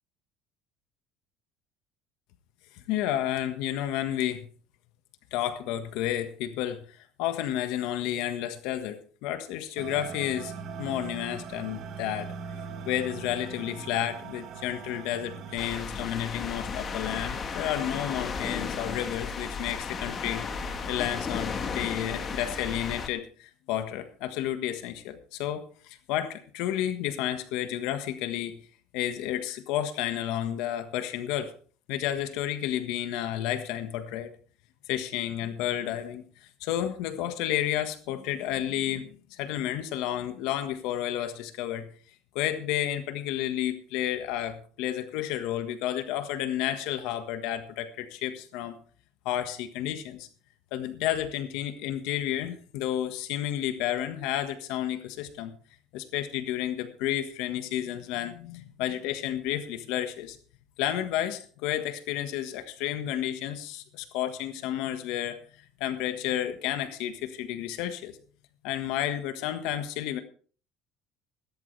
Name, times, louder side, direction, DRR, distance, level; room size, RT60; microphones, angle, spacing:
voice 1, 2.9-4.5 5.3-10.5 10.8-12.3 12.8-28.5 28.9-31.5 31.9-34.4 34.9-41.9 42.3-48.7 49.2-50.3 50.7-55.5 55.9-60.4 60.8-65.4 65.8-68.2 68.6-70.2, left 12 dB, 70° left, 9 dB, 1.5 m, -31 dB
sound 1, 9.8-15.8, right 6 dB, 45° right, 1.5 m, -40 dB
sound 2, 15.6-23.1, left 5 dB, 30° left, 1.4 m, -34 dB
15.5 x 13.5 x 3.3 m, 0.42 s
cardioid pair, 150°, 0 cm